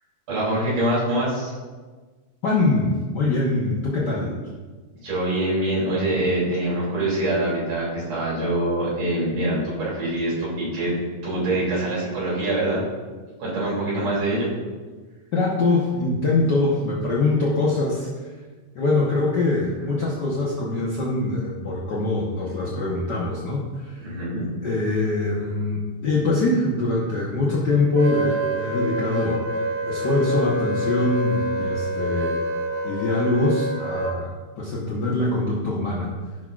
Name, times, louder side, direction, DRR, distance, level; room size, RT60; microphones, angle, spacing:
voice 1, 0.3-1.5 5.0-10.9 11.2-12.8 13.4-14.5 24.0-24.5, right 1 dB, 90° right, -8 dB, 4.3 m, -24 dB
voice 2, 2.4-4.4 15.3-18.3 18.7-24.1 24.6-29.4 29.8-32.4 32.8-34.3 34.6-36.1, left 2 dB, 70° left, -5 dB, 1.0 m, -23 dB
Wind instrument woodwind instrument, 28.0-34.1, right 1 dB, 75° right, 1.2 m, -27 dB
14.0 x 6.0 x 2.4 m, 1.4 s
omnidirectional pair, 3.4 m